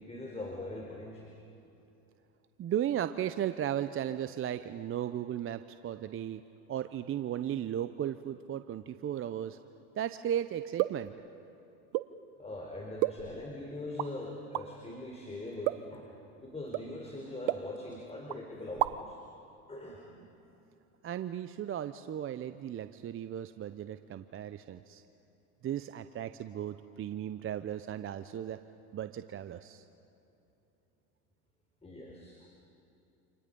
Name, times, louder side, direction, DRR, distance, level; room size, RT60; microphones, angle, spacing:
voice 1, 0.0-1.3 12.4-19.2 19.7-20.3 31.8-32.5, left 2 dB, 15° left, 0 dB, 4.2 m, -42 dB
voice 2, 2.6-6.4 6.7-9.6 10.0-11.1 21.0-25.0 25.6-28.6 28.9-29.8, right 10 dB, 30° right, 11 dB, 0.8 m, -36 dB
sound 1, 10.8-11.1 11.9-12.2 13.0-13.5 13.9-14.1 14.5-14.7 15.7-16.0 16.7-16.9 17.5-18.0 18.3-18.4 18.7-19.2, right 17 dB, 60° right, 0.9 m, -32 dB
29.0 x 27.5 x 5.4 m, 2.8 s
hypercardioid pair, 95°, 44 cm